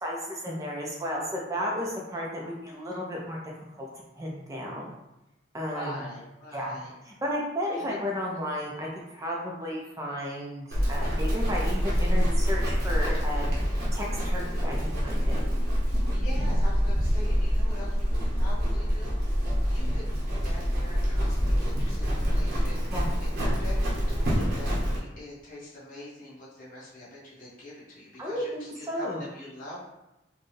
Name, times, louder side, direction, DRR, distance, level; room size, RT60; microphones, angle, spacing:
voice 1, 0.0-3.5 3.8-3.9 4.2-4.9 5.5-6.1 6.5-14.8 15.0-15.4 22.9-23.1 28.2-29.2, equal, 15° right, -2 dB, 0.5 m, -33 dB
voice 2, 5.7-6.9 7.7-8.1 16.1-22.8 23.2-29.8, left 1 dB, 40° left, -8 dB, 1.4 m, -44 dB
Livestock farm animals working animals, 10.7-25.0, equal, 50° right, 0.9 m, -26 dB
4.2 x 2.2 x 3.2 m, 0.93 s
head